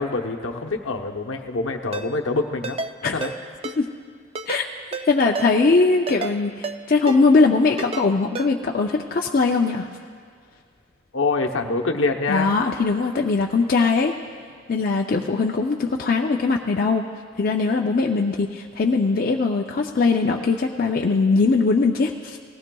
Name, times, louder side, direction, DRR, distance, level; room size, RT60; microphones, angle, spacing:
voice 1, 0.0-2.8 3.1-3.3 11.1-12.5, left 3 dB, 70° left, 3 dB, 0.9 m, -25 dB
Ringtone, 1.9-2.1 2.6-2.9 3.2-3.3 3.6-3.8 4.4-4.6 4.9-5.1 5.4-5.5 6.1-6.3 6.6-6.8 7.1-7.2 7.8-8.0 8.4-8.5, right 4 dB, 30° right, 0.4 m, -30 dB
voice 2, 5.1-9.9 12.3-14.1 14.7-17.0 17.4-22.4, left 4 dB, 45° left, 1 dB, 0.4 m, -20 dB
19.0 x 15.5 x 2.3 m, 2.1 s
head